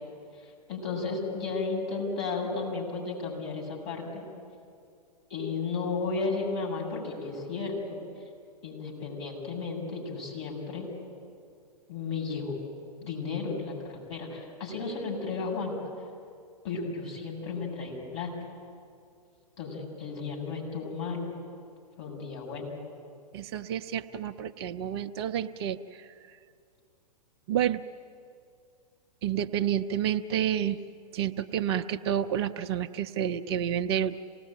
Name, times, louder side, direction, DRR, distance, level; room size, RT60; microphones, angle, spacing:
voice 1, 0.4-4.2 5.3-8.0 8.6-10.9 11.9-12.6 13.0-15.8 16.6-18.3 19.6-21.4 22.0-22.7, left 4 dB, 40° left, 0 dB, 7.5 m, -34 dB
voice 2, 23.3-26.1 27.5-27.8 29.2-30.8 31.1-34.2, right 10 dB, 40° right, 10 dB, 0.7 m, -29 dB
27.0 x 19.0 x 9.1 m, 2.3 s
figure-of-eight pair, 110°, 21 cm